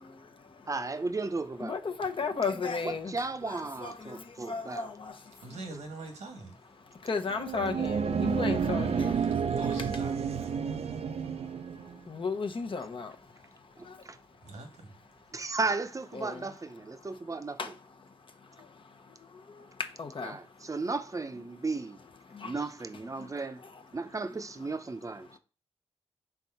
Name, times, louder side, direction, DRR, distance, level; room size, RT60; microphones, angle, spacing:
voice 1, 0.7-1.8 3.1-4.9 13.8-14.2 15.3-17.6 20.2-22.0 22.4-23.6 23.9-25.3, right 3 dB, 30° right, 0.7 m, -35 dB
voice 2, 1.6-3.1 3.4-4.1 4.5-4.9 7.1-9.2 12.1-13.1 16.1-16.4 17.6-17.7 20.0-20.3 22.4-22.5, left 4 dB, 50° left, 0.9 m, -33 dB
voice 3, 5.4-6.6 9.4-10.5 14.4-14.9, right 3 dB, 85° right, 1.4 m, -42 dB
sound 1, 7.3-12.0, right 6 dB, 65° right, 0.5 m, -30 dB
4.6 x 3.8 x 5.5 m
cardioid pair, 55°, 11 cm